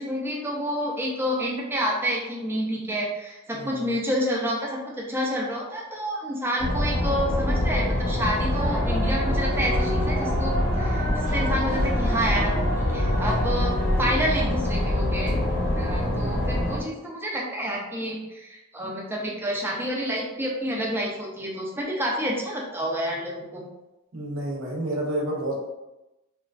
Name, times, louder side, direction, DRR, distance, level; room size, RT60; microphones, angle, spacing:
voice 1, 0.0-11.1 11.3-12.5 12.9-13.7 14.0-15.4 15.8-23.7, equal, 10° right, -2 dB, 0.5 m, -29 dB
voice 2, 3.5-4.0 16.1-16.5 24.1-25.6, right 1 dB, 70° right, -2 dB, 0.8 m, -30 dB
sound 1, 6.6-16.8, left 1 dB, 55° left, 0.6 m, -25 dB
sound 2, 8.5-15.1, equal, 15° left, 0.8 m, -34 dB
2.9 x 2.3 x 2.4 m, 0.99 s
head